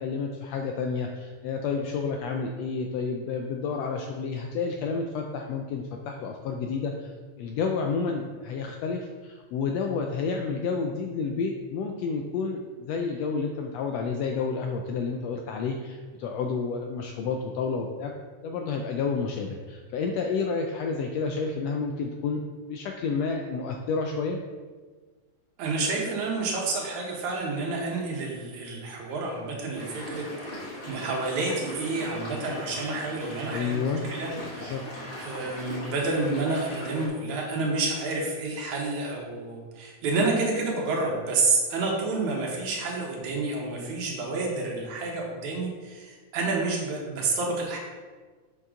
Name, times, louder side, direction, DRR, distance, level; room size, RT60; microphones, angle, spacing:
voice 1, 0.0-7.1 7.4-18.1 18.4-22.4 22.7-24.4 33.5-34.0 34.6-34.8, left 5 dB, 80° left, 3 dB, 1.5 m, -30 dB
voice 2, 25.6-34.8 35.2-47.8, right 3 dB, 75° right, -1 dB, 2.6 m, -29 dB
sound 1, 29.7-37.1, equal, 30° left, 2.9 m, -39 dB
7.2 x 6.6 x 3.7 m, 1.4 s
omnidirectional pair, 3.5 m